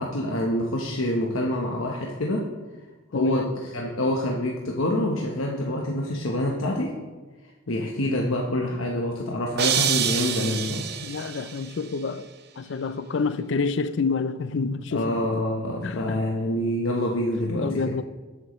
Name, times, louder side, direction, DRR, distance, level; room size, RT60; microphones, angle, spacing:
voice 1, 0.0-2.5 3.1-3.4 3.7-6.9 7.7-10.9 14.9-17.8, left 1 dB, 75° left, 1.0 m, -26 dB
voice 2, 3.1-3.5 11.0-12.3 12.6-15.3 15.8-16.2 17.6-18.0, left 4 dB, 60° left, 0.4 m, -28 dB
sound 1, 9.6-11.7, right 8 dB, 50° right, 0.7 m, -26 dB
13.0 x 9.0 x 3.1 m
head